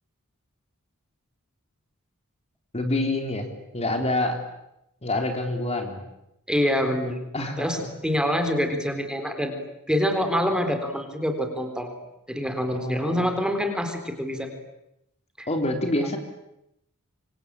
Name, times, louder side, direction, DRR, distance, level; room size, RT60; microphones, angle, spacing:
voice 1, 2.7-3.5 3.7-4.4 5.0-6.0 7.3-7.9 12.7-13.5 15.5-16.2, left 2 dB, 30° left, 4 dB, 3.6 m, -27 dB
voice 2, 6.5-7.2 7.6-7.8 8.0-9.5 9.9-11.9 12.3-14.5 15.4-15.5, equal, 5° right, 6 dB, 3.8 m, -25 dB
26.5 x 25.0 x 8.9 m, 0.84 s
head